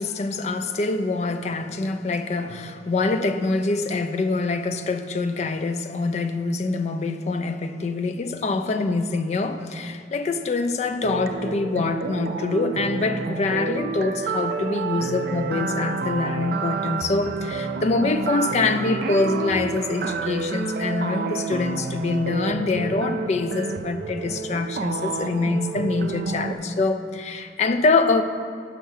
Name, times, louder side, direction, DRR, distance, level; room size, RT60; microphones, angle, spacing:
voice 1, 0.0-28.2, left 3 dB, 35° left, 9 dB, 0.3 m, -25 dB
sound 1, 11.0-26.5, right 4 dB, 55° right, 0.4 m, -29 dB
5.6 x 5.6 x 6.3 m, 2.1 s
head